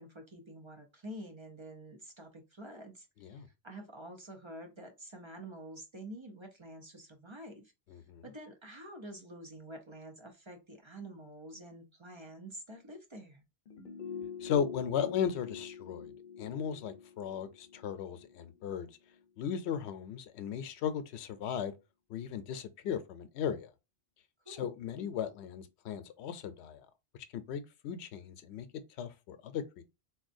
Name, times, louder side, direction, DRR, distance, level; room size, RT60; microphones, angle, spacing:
voice 1, 0.0-7.6 8.2-13.4 24.5-24.7, right 1 dB, 30° right, 0.6 m, -48 dB
voice 2, 7.9-8.2 14.4-16.1 16.4-18.9 19.4-21.7 22.1-23.7 24.5-26.8 27.3-28.7 29.0-29.8, left 8 dB, 90° left, 0.8 m, -36 dB
sound 1, 13.7-18.8 19.1-19.2, left 7 dB, 55° left, 0.8 m, -45 dB
4.1 x 2.3 x 2.5 m
omnidirectional pair, 1.1 m